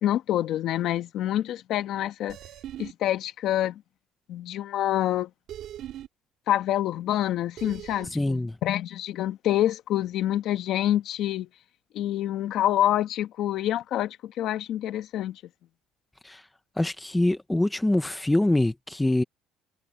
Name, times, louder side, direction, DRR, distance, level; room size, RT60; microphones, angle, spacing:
voice 1, 0.0-2.4 2.8-3.8 4.3-5.3 6.5-11.5 11.9-15.4, left 12 dB, 60° left, 1.6 m, -27 dB
sound 1, 2.3-2.9 5.5-6.1 7.6-8.1, right 12 dB, 60° right, 2.4 m, -39 dB
voice 2, 8.1-8.6 16.2-16.4 16.8-19.2, left 1 dB, 5° left, 1.1 m, -24 dB
cardioid pair, 130°, 0 cm